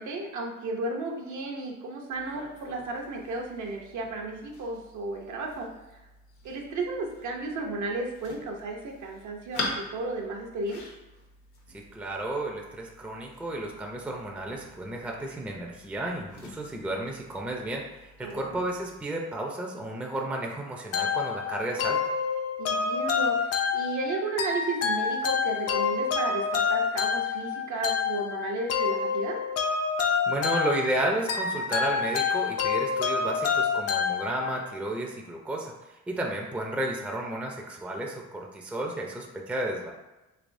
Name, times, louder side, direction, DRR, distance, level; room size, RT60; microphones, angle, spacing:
voice 1, 0.0-6.1 6.4-10.8 18.2-18.6 22.6-29.4, right 3 dB, 75° right, 1 dB, 0.7 m, -34 dB
sound 1, 2.1-19.0, left 2 dB, 75° left, 0.9 m, -44 dB
voice 2, 11.7-22.0 30.3-39.9, right 1 dB, 5° right, 0 dB, 0.4 m, -32 dB
sound 2, 20.9-34.7, left 6 dB, 55° left, 0.4 m, -28 dB
3.3 x 3.1 x 2.6 m, 1.0 s
cardioid pair, 90°, 30 cm